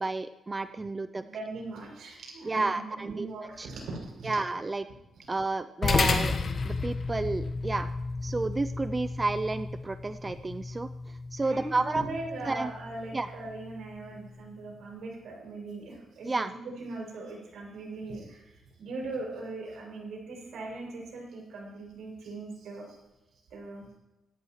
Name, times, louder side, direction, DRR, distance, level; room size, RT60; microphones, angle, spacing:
voice 1, 0.0-1.2 2.4-3.3 3.6-3.7 4.2-4.9 5.3-6.4 6.6-7.9 8.2-12.0 12.5-12.7 13.1-13.3 16.2-16.5, right 3 dB, 20° right, 11 dB, 0.4 m, -31 dB
voice 2, 1.3-2.7 2.9-4.3 11.4-16.5 16.8-18.4 18.8-23.0 23.5-23.9, right 2 dB, 80° right, -1 dB, 6.6 m, -40 dB
sound 1, 5.8-14.5, left 4 dB, 45° left, 1.3 m, -33 dB
24.5 x 14.0 x 3.2 m, 0.96 s
wide cardioid pair, 150°, 0 cm